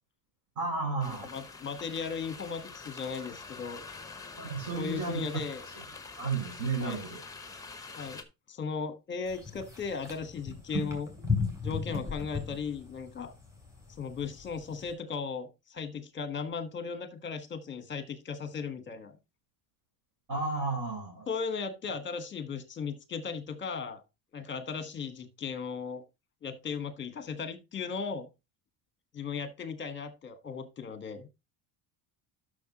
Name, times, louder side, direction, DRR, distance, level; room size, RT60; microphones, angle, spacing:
voice 1, 0.5-1.3 4.4-5.8 6.2-7.2 20.3-21.3, right 4 dB, 55° right, -2 dB, 4.8 m, -33 dB
sound 1, 1.0-8.2, left 4 dB, 10° left, 1.0 m, -46 dB
voice 2, 1.3-3.9 4.7-5.6 6.8-7.0 8.0-8.2 8.5-11.1 11.6-13.3 14.0-19.2 21.3-24.0 24.3-26.0 26.4-28.3 29.1-31.3, left 5 dB, 30° left, 10 dB, 1.3 m, -37 dB
sound 2, 9.3-14.9, left 4 dB, 10° right, 3.4 m, -36 dB
11.5 x 6.6 x 2.9 m, 0.25 s
cardioid pair, 150°, 39 cm